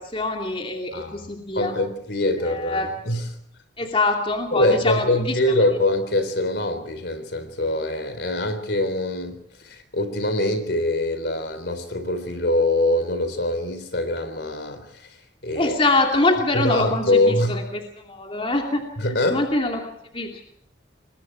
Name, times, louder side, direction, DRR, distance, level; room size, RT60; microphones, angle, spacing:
voice 1, 0.0-1.7 2.4-2.9 3.8-5.4 15.5-18.9 19.3-20.5, left 2 dB, 30° left, 2 dB, 2.8 m, -24 dB
voice 2, 1.5-3.3 4.5-15.1 15.4-15.8 16.5-17.6 19.0-19.5, left 1 dB, 60° left, 10 dB, 3.7 m, -23 dB
27.5 x 22.5 x 4.7 m, 0.71 s
head